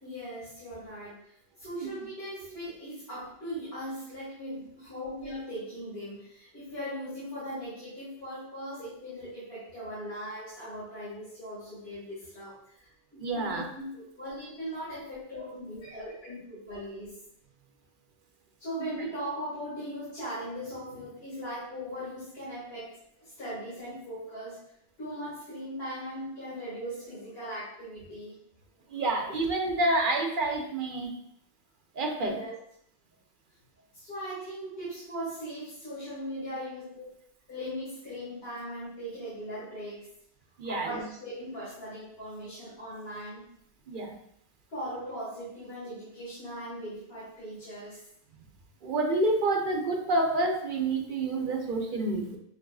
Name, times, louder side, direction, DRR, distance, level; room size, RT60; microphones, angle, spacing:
voice 1, 0.0-12.9 13.3-17.1 18.6-22.9 23.2-24.6 25.0-28.3 32.2-32.5 33.9-37.0 37.5-40.1 40.6-43.4 44.7-48.0, equal, 75° left, -11 dB, 1.9 m, -39 dB
voice 2, 13.2-13.6 28.9-31.1 32.0-32.3 40.6-40.9 43.9-44.1 48.8-52.4, right 2 dB, 60° right, 1 dB, 0.7 m, -28 dB
6.3 x 2.4 x 2.3 m, 0.72 s
omnidirectional pair, 1.0 m